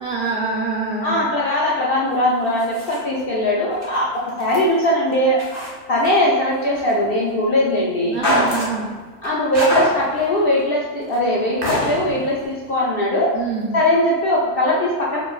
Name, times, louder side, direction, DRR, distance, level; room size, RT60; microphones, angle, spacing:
voice 1, 0.0-1.2 8.1-8.9 13.3-13.7, right 4 dB, 70° right, -4 dB, 0.5 m, -25 dB
voice 2, 1.0-8.2 9.2-13.4 13.7-15.2, left 1 dB, 60° left, -4 dB, 0.6 m, -20 dB
sound 1, 2.1-3.2 3.7-6.9 7.3-7.4 7.8-7.9 8.1-8.8 9.2-10.3 10.6-10.7 11.0-11.2 11.6-12.5, equal, 35° right, 0.7 m, -33 dB
sound 2, 7.0-7.2 8.2-8.9 9.7-10.2 11.6-12.4, left 1 dB, 40° left, 1.1 m, -23 dB
4.6 x 3.1 x 2.4 m, 1.4 s
omnidirectional pair, 1.5 m